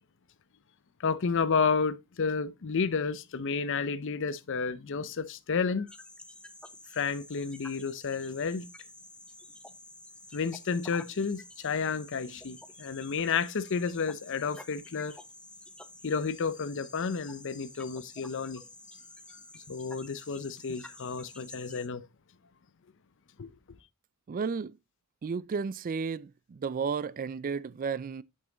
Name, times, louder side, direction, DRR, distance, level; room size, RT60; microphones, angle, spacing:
voice 1, 1.0-5.9 6.9-8.7 10.3-15.2 16.0-18.6 19.3-19.4 19.7-22.0 23.4-23.5, left 5 dB, 60° left, 0.6 m, -31 dB
sound 1, 5.9-21.9, left 1 dB, 5° left, 0.7 m, -50 dB
voice 2, 24.3-24.8 25.2-28.2, right 5 dB, 40° right, 0.3 m, -33 dB
7.9 x 5.5 x 3.8 m
head